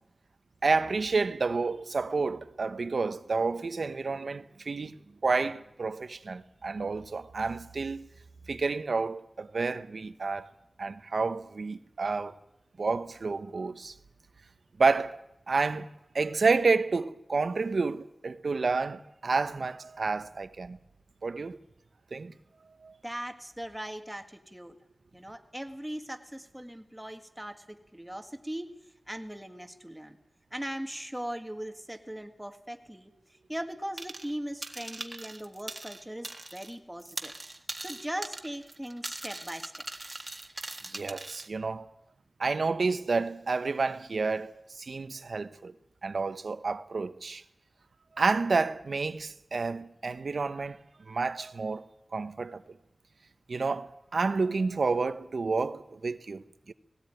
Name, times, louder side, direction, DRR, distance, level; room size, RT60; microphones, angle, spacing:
voice 1, 0.6-5.0 5.2-8.1 8.5-10.5 10.8-12.3 12.8-13.9 14.8-15.2 15.5-15.9 16.1-20.8 21.2-21.6 22.1-22.3 22.8-22.9 40.9-41.9 42.4-45.7 46.0-47.4 48.2-50.8 51.1-51.9 52.1-52.6 53.5-56.7, right 4 dB, 75° right, 1.0 m, -30 dB
voice 2, 23.0-24.8 25.1-28.8 29.1-30.2 30.5-33.1 33.5-37.3 37.8-39.9, right 1 dB, 5° right, 1.8 m, -39 dB
sound 1, 34.0-34.3 34.6-36.7 37.0-41.5, right 2 dB, 30° right, 1.6 m, -41 dB
19.0 x 17.5 x 9.1 m
wide cardioid pair, 90°, 0 cm